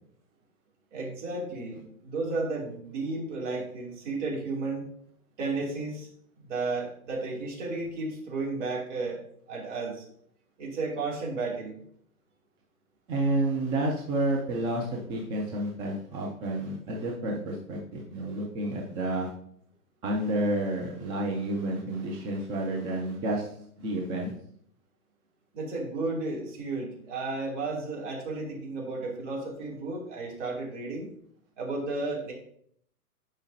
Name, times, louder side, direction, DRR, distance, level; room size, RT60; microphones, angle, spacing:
voice 1, 0.9-4.9 5.4-6.1 6.4-9.2 9.5-10.0 10.6-11.7 25.5-31.1 31.6-32.3, right 3 dB, 50° right, -2 dB, 2.9 m, -33 dB
voice 2, 13.1-19.3 20.0-23.5 23.8-24.3, right 1 dB, 10° right, -1 dB, 0.5 m, -30 dB
10.5 x 5.1 x 2.7 m, 0.66 s
figure-of-eight pair, 115°, 46 cm